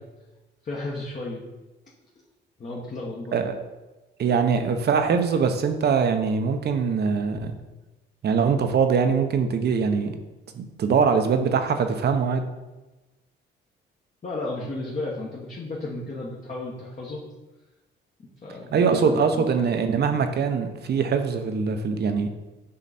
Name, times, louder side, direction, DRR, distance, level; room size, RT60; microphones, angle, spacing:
voice 1, 0.6-1.4 2.6-3.4 14.2-17.2 18.2-19.7, left 2 dB, 40° left, -4 dB, 1.4 m, -33 dB
voice 2, 4.2-7.6 8.2-10.1 10.5-12.5 18.7-22.3, right 6 dB, 55° right, 7 dB, 0.9 m, -22 dB
7.5 x 4.9 x 4.2 m, 1.1 s
cardioid pair, 90°, 20 cm